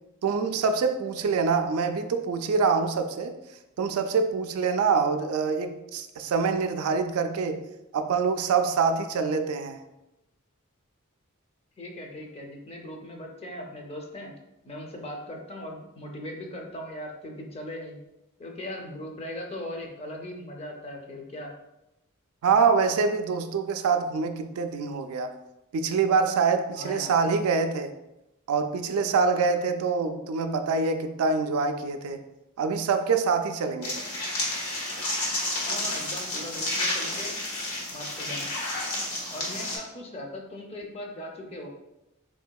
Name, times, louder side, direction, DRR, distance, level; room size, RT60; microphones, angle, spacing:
voice 1, 0.2-3.3 3.8-7.7 7.9-9.8 22.4-25.3 25.7-27.9 28.5-32.2 32.6-34.0, right 5 dB, 80° right, 7 dB, 0.4 m, -25 dB
voice 2, 11.8-14.3 14.6-18.0 18.4-21.5 26.8-27.2 35.7-37.3 37.9-38.5 39.3-41.7, left 1 dB, 30° left, 1 dB, 0.5 m, -39 dB
sound 1, 33.8-39.8, left 1 dB, 85° left, 1.1 m, -30 dB
3.7 x 3.5 x 2.2 m, 0.93 s
head